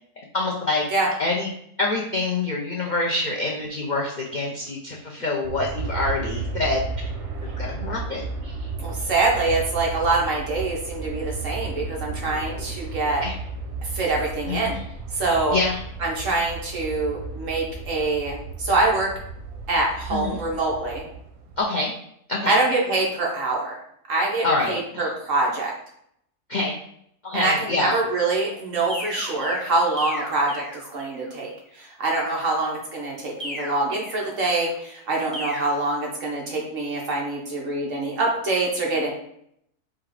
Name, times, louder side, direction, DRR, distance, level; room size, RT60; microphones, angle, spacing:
voice 1, 0.3-0.8 1.2-1.5 1.8-6.8 7.6-8.7 13.2-13.3 14.5-14.8 15.5-15.8 20.1-20.4 21.6-21.9 22.3-22.6 24.4-25.1 26.5-26.8 27.2-28.0, left 2 dB, 65° left, -2 dB, 0.4 m, -26 dB
Aircraft, 5.4-21.6, right 4 dB, 85° right, 1.4 m, -34 dB
voice 2, 8.8-13.2 13.8-14.8 15.1-15.6 16.0-19.1 19.7-21.0 22.5-23.8 24.1-25.7 27.3-31.5 31.8-39.1, right 2 dB, 55° right, -2 dB, 1.4 m, -25 dB
sound 1, 28.9-31.3 33.4-34.8 35.3-35.8, left 1 dB, ahead, 0.7 m, -36 dB
4.4 x 2.5 x 4.7 m, 0.71 s
omnidirectional pair, 1.7 m